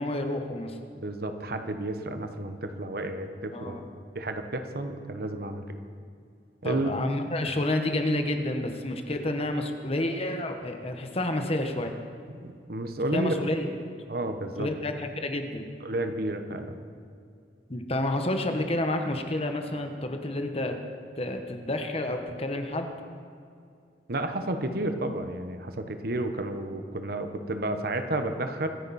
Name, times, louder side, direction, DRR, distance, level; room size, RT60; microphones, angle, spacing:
voice 1, 0.0-0.8 3.5-3.8 6.6-11.9 13.1-13.7 14.6-15.7 17.7-20.7 21.2-22.9, left 1 dB, 35° left, 5 dB, 1.2 m, -29 dB
voice 2, 0.9-3.8 4.1-5.6 6.6-7.0 12.4-13.4 14.1-14.7 15.8-16.8 24.1-28.7, right 1 dB, 60° right, 7 dB, 1.1 m, -31 dB
24.0 x 10.0 x 4.2 m, 2.4 s
head